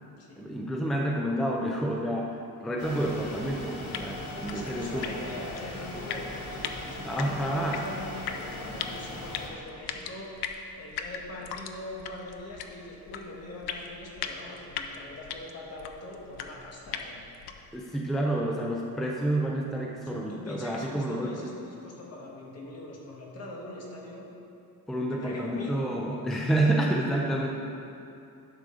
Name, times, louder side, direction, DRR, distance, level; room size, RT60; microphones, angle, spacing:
voice 1, 0.4-5.1 7.0-7.8 17.7-21.5 24.9-27.5, right 1 dB, ahead, -1 dB, 0.5 m, -29 dB
sound 1, 2.8-9.5, left 1 dB, 70° left, 1.7 m, -39 dB
sound 2, 3.9-17.8, left 7 dB, 90° left, 0.7 m, -40 dB
voice 2, 4.5-10.3 10.8-17.2 20.0-24.3 25.1-25.8, left 1 dB, 40° left, -2 dB, 1.5 m, -42 dB
11.0 x 6.4 x 3.8 m, 2.7 s
cardioid pair, 160°, 37 cm